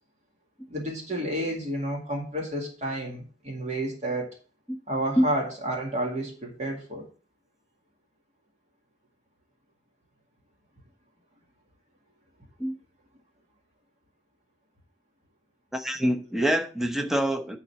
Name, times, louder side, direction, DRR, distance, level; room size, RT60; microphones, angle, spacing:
voice 1, 0.7-4.3 4.9-7.0, right 1 dB, 40° right, 2.2 m, -30 dB
voice 2, 15.7-17.6, equal, ahead, 0.9 m, -25 dB
10.5 x 4.1 x 5.7 m
head